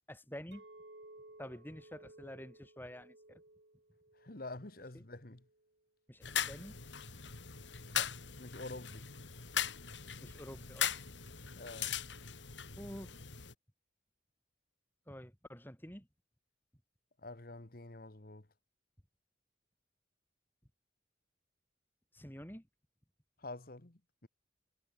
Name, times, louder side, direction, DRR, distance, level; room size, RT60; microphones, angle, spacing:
voice 1, 0.1-0.6 1.4-3.4 4.9-5.0 6.1-6.8 10.2-10.9 12.7-13.2 15.1-16.1 22.1-22.7, equal, 10° left, 7.0 m, -48 dB
Chink clink, 0.5-5.7, right 2 dB, 65° right, 2.8 m, -58 dB
voice 2, 4.2-5.4 7.8-9.1 11.6-12.0 17.2-18.5 23.4-24.3, left 2 dB, 50° left, 1.6 m, -48 dB
sound 1, 6.2-13.5, left 9 dB, 75° left, 2.9 m, -39 dB
head